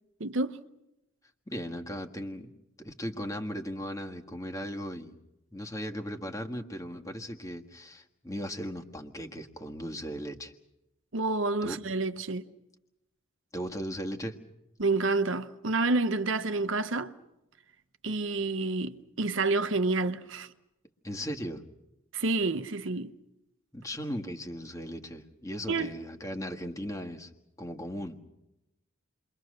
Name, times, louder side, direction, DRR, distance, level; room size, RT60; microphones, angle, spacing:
voice 1, 0.2-0.6 11.1-12.4 14.8-17.1 18.0-20.5 22.1-23.1 25.7-25.9, right 3 dB, 70° right, 1.0 m, -29 dB
voice 2, 1.5-2.5 2.8-5.1 5.5-10.5 11.6-11.8 13.5-14.4 21.0-21.6 23.7-27.3 27.6-28.2, equal, 15° left, 1.6 m, -37 dB
29.0 x 23.5 x 6.6 m
head